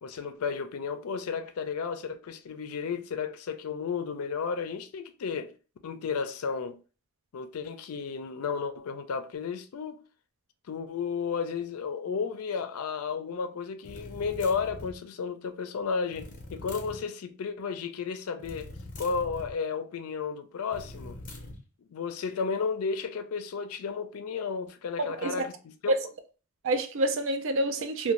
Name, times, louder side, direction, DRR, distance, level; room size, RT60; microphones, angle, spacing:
voice 1, 0.0-5.5 5.8-6.8 7.3-10.0 10.7-21.2 21.8-25.9, left 5 dB, 80° left, 0.4 m, -33 dB
sound 1, 13.8-15.0 16.1-17.0 18.4-19.6 20.7-21.6, left 1 dB, 40° left, 0.6 m, -43 dB
voice 2, 25.0-25.3 25.9-26.0 26.6-28.1, right 2 dB, 60° right, 0.4 m, -27 dB
2.6 x 2.2 x 3.0 m
head